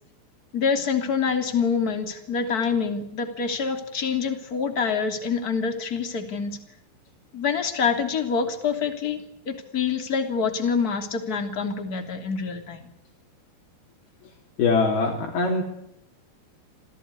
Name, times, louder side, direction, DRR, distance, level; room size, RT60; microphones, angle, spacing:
voice 1, 0.5-6.6 7.3-12.9, left 6 dB, 25° left, 6 dB, 2.6 m, -26 dB
voice 2, 14.6-15.6, left 4 dB, 60° left, -1 dB, 5.1 m, -22 dB
28.0 x 18.0 x 9.7 m, 0.78 s
omnidirectional pair, 5.1 m